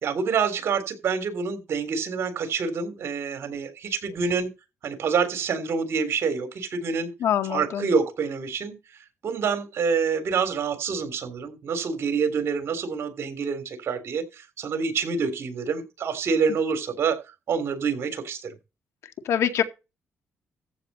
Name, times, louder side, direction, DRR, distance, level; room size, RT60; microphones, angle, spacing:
voice 1, 0.0-4.5 4.8-7.1 7.5-8.8 9.2-17.2 17.5-18.5, right 5 dB, 65° right, 3.5 m, -27 dB
voice 2, 7.2-7.9 19.2-19.6, left 9 dB, 80° left, 2.0 m, -24 dB
14.5 x 7.2 x 4.3 m
cardioid pair, 95°, 5 cm